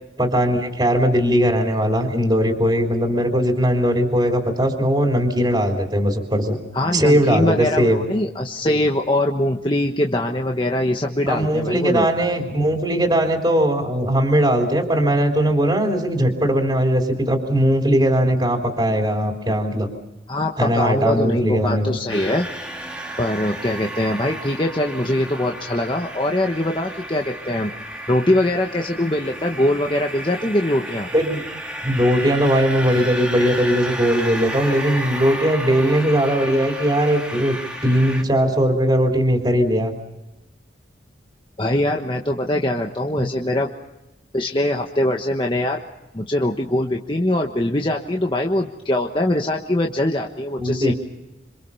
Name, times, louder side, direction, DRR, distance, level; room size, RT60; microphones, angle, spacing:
voice 1, 0.2-6.6 6.9-8.0 11.3-19.9 20.6-22.0 31.1-31.4 31.8-37.6 37.8-39.9 43.2-43.3 50.6-50.9, equal, 20° right, 1 dB, 3.4 m, -19 dB
voice 2, 6.7-12.1 20.3-22.5 23.2-27.7 28.1-31.1 41.6-43.7 44.3-45.8 46.1-50.9, left 1 dB, 25° left, 1 dB, 1.3 m, -22 dB
sound 1, 22.1-38.2, right 1 dB, 5° right, 2.3 m, -32 dB
27.0 x 26.0 x 5.6 m, 0.96 s
head